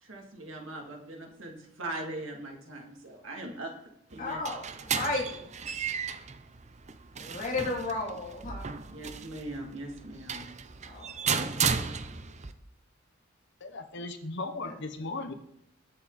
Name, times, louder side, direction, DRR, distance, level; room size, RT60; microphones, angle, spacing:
voice 1, 0.0-3.7 4.1-4.4 8.9-10.5, right 1 dB, 70° right, 1 dB, 2.9 m, -40 dB
sound 1, 4.1-12.5, right 6 dB, 35° right, 0.8 m, -34 dB
voice 2, 4.2-5.4 7.2-8.7 10.8-11.5 14.6-14.7, left 2 dB, 45° left, -2 dB, 3.4 m, -34 dB
voice 3, 13.6-15.3, left 3 dB, 60° left, 7 dB, 1.1 m, -37 dB
21.0 x 7.1 x 4.3 m, 0.80 s
head